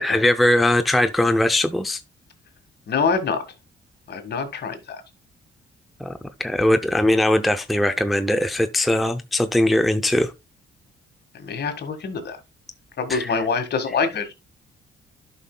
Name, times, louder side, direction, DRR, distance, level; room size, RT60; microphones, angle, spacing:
voice 1, 0.0-2.0 6.0-10.3 13.1-13.4, left 1 dB, ahead, 0.5 m, -20 dB
voice 2, 2.9-3.4 4.1-5.0 11.3-12.4 13.0-14.3, left 5 dB, 55° left, 1.7 m, -25 dB
11.5 x 5.6 x 2.2 m
cardioid pair, 90°, 20 cm